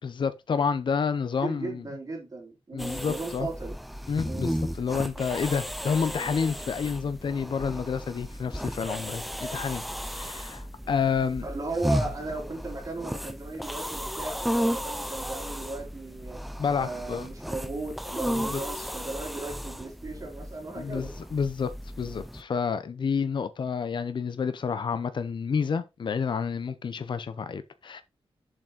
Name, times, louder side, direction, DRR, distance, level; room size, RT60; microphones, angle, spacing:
voice 1, 0.0-1.8 2.7-3.5 4.1-11.4 16.6-17.3 18.3-18.9 20.8-21.7 22.0-28.0, left 6 dB, 50° left, 0.7 m, -29 dB
voice 2, 1.4-3.8 4.2-4.5 11.4-16.4 16.8-21.1, right 2 dB, 35° right, 3.6 m, -36 dB
sound 1, 2.8-22.4, equal, ahead, 0.4 m, -34 dB
7.3 x 5.4 x 3.9 m
wide cardioid pair, 180°, 10 cm